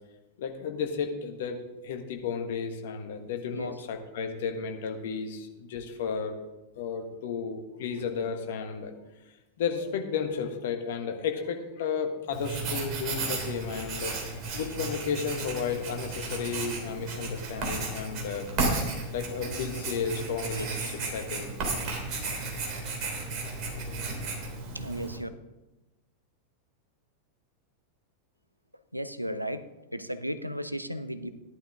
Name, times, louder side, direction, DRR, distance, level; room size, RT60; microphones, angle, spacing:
voice 1, 0.4-6.4 6.8-8.9 9.6-14.2 14.5-18.5 19.1-21.5 23.2-23.3 23.8-23.9, left 6 dB, 55° left, 5 dB, 1.5 m, -33 dB
Writing, 12.3-25.2, right 3 dB, 40° right, 3.3 m, -34 dB
voice 2, 24.7-25.3 28.9-29.7 29.9-31.3, equal, 90° right, 12 dB, 0.6 m, -34 dB
14.5 x 11.0 x 3.7 m, 1.0 s
figure-of-eight pair, 90°, 0 cm